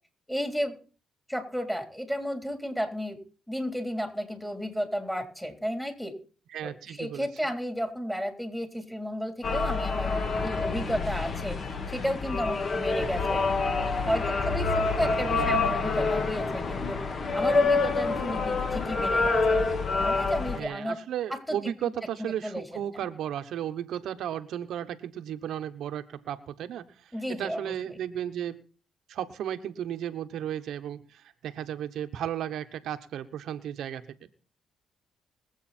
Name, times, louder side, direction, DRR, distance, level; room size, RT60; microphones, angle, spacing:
voice 1, 0.3-0.8 1.3-3.2 3.5-6.1 6.6-11.6 11.9-13.5 14.1-17.0 17.3-19.6 20.0-21.0 21.3-21.9 22.2-22.7 22.9-23.1 27.1-27.7, equal, 5° left, 4 dB, 3.7 m, -32 dB
voice 2, 6.5-7.3 15.4-15.6 20.5-28.6 29.1-34.1, right 10 dB, 80° right, 8 dB, 0.9 m, -34 dB
sound 1, 9.4-20.6, left 4 dB, 50° left, 1.7 m, -27 dB
21.5 x 8.1 x 4.3 m, 0.38 s
cardioid pair, 75°, 0 cm